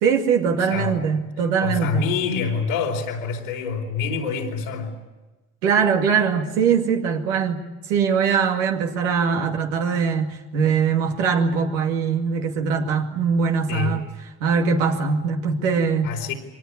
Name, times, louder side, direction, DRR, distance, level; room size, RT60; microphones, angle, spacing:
voice 1, 0.0-2.1 5.6-14.1 14.4-16.1, right 6 dB, 85° right, 2 dB, 2.4 m, -22 dB
voice 2, 0.6-1.0 1.6-4.9 13.7-14.0 16.0-16.3, left 5 dB, 85° left, 1 dB, 4.4 m, -26 dB
24.5 x 18.5 x 9.8 m, 1.2 s
hypercardioid pair, 50°, 37 cm